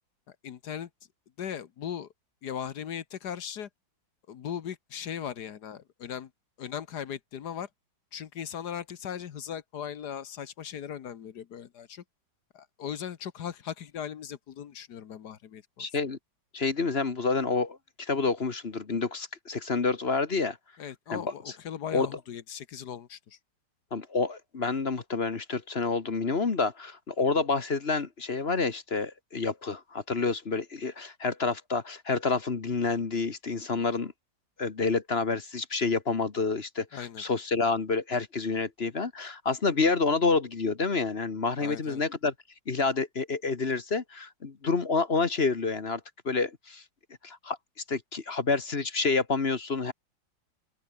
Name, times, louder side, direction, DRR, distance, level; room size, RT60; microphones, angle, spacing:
voice 1, 0.3-0.9 1.4-2.1 2.4-3.7 4.3-6.3 6.6-7.7 8.1-12.0 12.5-15.9 20.8-23.4 36.9-37.2 41.6-42.0, left 8 dB, 60° left, 1.6 m, -38 dB
voice 2, 15.8-16.2 16.5-20.6 21.1-21.3 21.9-22.1 23.9-34.1 34.6-42.3 42.7-46.0 46.2-46.8 47.2-47.6 47.9-49.9, left 4 dB, 35° left, 1.5 m, -28 dB
open air
omnidirectional pair, 2.1 m